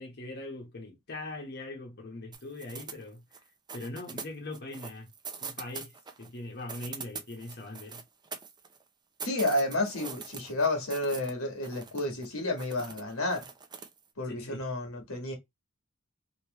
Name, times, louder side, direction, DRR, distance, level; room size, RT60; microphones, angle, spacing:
voice 1, 0.0-3.2 3.7-5.1 5.4-8.0 14.2-14.6, left 2 dB, 50° left, 1.0 m, -41 dB
sound 1, 2.3-3.4 3.7-6.3 6.6-8.8 9.2-11.3 11.6-12.3 12.6-14.0, right 5 dB, 20° right, 0.5 m, -43 dB
voice 2, 9.2-13.5 14.2-15.4, left 2 dB, 85° left, 1.4 m, -31 dB
3.2 x 2.9 x 2.9 m
head